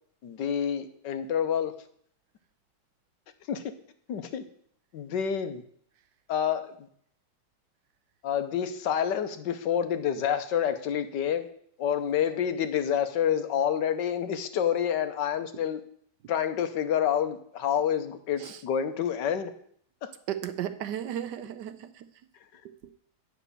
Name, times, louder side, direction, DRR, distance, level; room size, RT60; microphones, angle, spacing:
voice 1, 0.2-1.7 3.5-3.7 4.1-4.4 4.9-5.6 6.3-6.7 8.2-11.5 11.8-15.8 16.3-19.5 20.0-20.1, left 8 dB, 70° left, 9 dB, 1.4 m, -28 dB
voice 2, 20.3-21.9 22.6-22.9, right 10 dB, 70° right, 11 dB, 1.2 m, -35 dB
9.2 x 6.0 x 6.7 m, 0.62 s
omnidirectional pair, 2.0 m